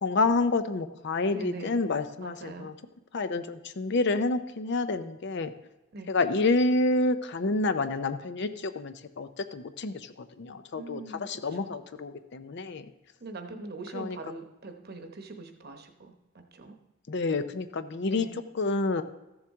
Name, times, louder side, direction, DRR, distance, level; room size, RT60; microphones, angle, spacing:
voice 1, 0.0-2.7 3.1-5.5 6.1-12.9 13.9-14.2 17.1-18.3 18.5-19.0, left 3 dB, 55° left, 11 dB, 0.5 m, -28 dB
voice 2, 1.3-1.8 2.2-2.7 5.9-6.1 10.8-11.3 11.6-11.8 13.2-16.8 18.1-18.4, right 3 dB, 50° right, 6 dB, 0.9 m, -42 dB
14.0 x 7.2 x 3.6 m, 0.99 s
head